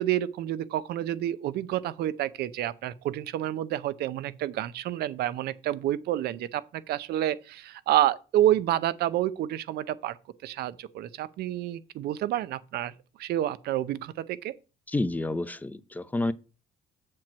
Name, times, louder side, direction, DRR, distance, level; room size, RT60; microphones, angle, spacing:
voice 1, 0.0-10.2 10.4-12.9 13.2-14.5, right 13 dB, 70° right, 0.6 m, -29 dB
voice 2, 14.9-16.3, left 2 dB, 10° left, 0.6 m, -29 dB
7.6 x 4.5 x 6.3 m
cardioid pair, 110°, 17 cm